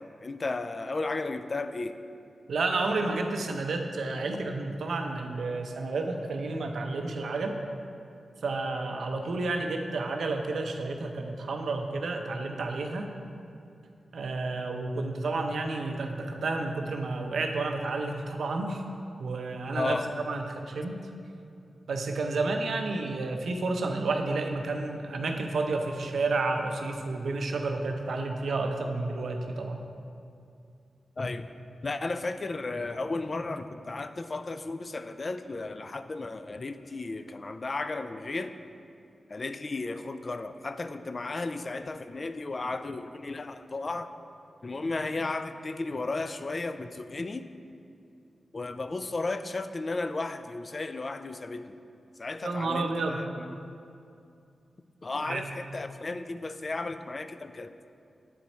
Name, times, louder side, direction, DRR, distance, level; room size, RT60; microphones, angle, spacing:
voice 1, 0.0-2.0 19.8-20.1 31.2-31.5 31.8-38.5 39.3-44.1 44.6-47.4 48.5-51.8 52.2-53.6 55.0-57.7, left 3 dB, 40° left, 10 dB, 0.3 m, -34 dB
voice 2, 2.5-7.6 8.4-13.1 14.1-18.8 19.2-20.9 21.9-29.8 52.4-53.3 55.2-55.5, right 3 dB, 85° right, 4 dB, 0.6 m, -31 dB
8.7 x 4.5 x 4.1 m, 2.5 s
wide cardioid pair, 90°, 0 cm